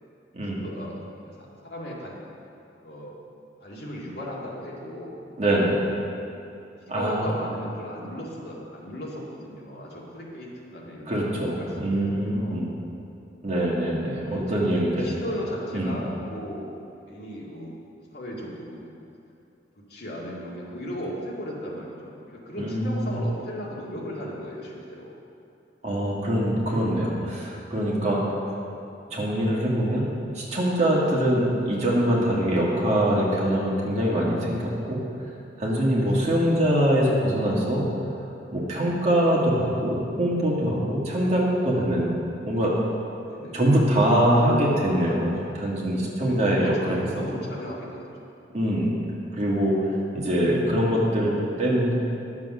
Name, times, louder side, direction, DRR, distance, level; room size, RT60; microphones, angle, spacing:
voice 1, 0.5-1.0 1.2-2.2 2.7-3.1 3.6-5.2 6.9-12.7 14.2-14.6 14.9-16.7 17.1-17.8 18.1-19.1 19.9-25.1 31.1-31.3 36.1-36.4 41.1-41.5 43.2-43.6 46.3-46.8 47.1-48.0, equal, 60° left, -4 dB, 2.1 m, -37 dB
voice 2, 5.4-5.8 6.9-7.3 11.1-12.7 13.4-15.1 15.7-15.9 22.6-23.1 25.8-28.2 29.1-30.0 30.3-35.0 35.6-37.9 38.5-42.1 42.4-42.8 43.5-47.3 48.5-48.9 49.3-51.9, right 1 dB, 40° right, -5 dB, 2.1 m, -23 dB
11.0 x 7.2 x 6.2 m, 2.6 s
head